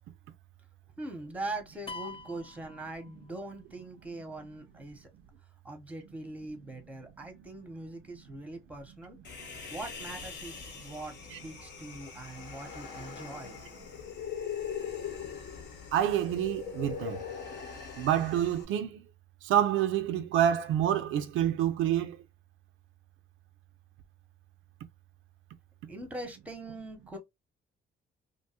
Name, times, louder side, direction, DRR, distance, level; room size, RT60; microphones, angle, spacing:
voice 1, 1.0-5.1 5.6-9.2 9.7-11.2 11.4-13.6 25.9-27.2, right 2 dB, 5° right, 0.8 m, -42 dB
sound 1, 1.9-3.6, left 3 dB, 25° left, 0.4 m, -44 dB
Human voice, 9.2-18.6, left 7 dB, 60° left, 0.9 m, -41 dB
voice 2, 15.9-17.2 18.0-19.0 19.4-22.2, right 10 dB, 85° right, 0.4 m, -27 dB
2.6 x 2.3 x 2.8 m
cardioid pair, 90°, 20 cm